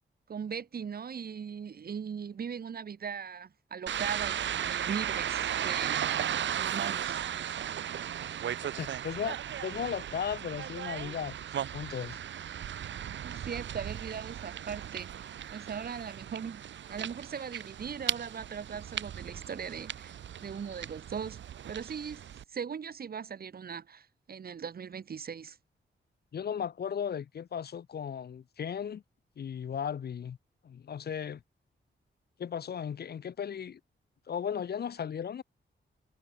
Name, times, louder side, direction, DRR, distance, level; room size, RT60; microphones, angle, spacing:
voice 1, 0.3-6.0 6.6-7.2 13.2-20.1 20.4-21.4 21.7-22.2 22.5-25.6, right 7 dB, 50° right, 1.3 m, -39 dB
sound 1, 3.9-22.4, right 10 dB, 65° right, 0.7 m, -36 dB
voice 2, 8.6-12.2 26.3-29.0 29.4-30.4 30.6-31.4 32.4-33.8 34.3-35.4, left 8 dB, 55° left, 0.8 m, -36 dB
wide cardioid pair, 160°, 20 cm